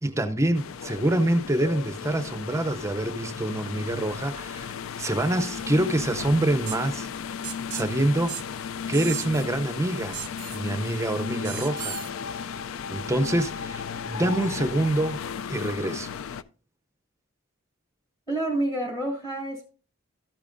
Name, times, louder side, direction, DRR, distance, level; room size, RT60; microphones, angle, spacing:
voice 1, 0.0-7.1 7.7-8.4 8.9-10.2 10.5-12.0 12.9-15.2 15.5-16.1, right 1 dB, 15° right, 0.5 m, -26 dB
sound 1, 0.5-16.4, left 7 dB, 75° left, 0.4 m, -35 dB
sound 2, 6.7-6.8 7.4-7.9 8.3-8.4 8.9-9.4 10.1-10.6 11.4-12.1, right 17 dB, 85° right, 0.4 m, -36 dB
voice 2, 18.3-19.7, right 1 dB, 20° left, 1.6 m, -28 dB
13.0 x 8.5 x 2.6 m
head